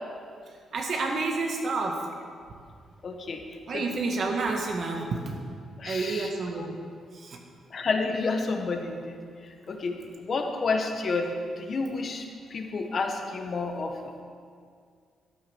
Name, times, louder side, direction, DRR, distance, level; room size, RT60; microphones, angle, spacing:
voice 1, 0.7-2.0 3.7-5.4 5.8-6.8 7.1-7.4, right 3 dB, 50° right, 1 dB, 1.6 m, -29 dB
voice 2, 3.0-3.4 3.7-3.8 5.8-6.3 7.7-9.2 9.4-13.9, left 3 dB, 40° left, 4 dB, 1.5 m, -30 dB
12.5 x 11.0 x 6.4 m, 2.2 s
cardioid pair, 145°, 0 cm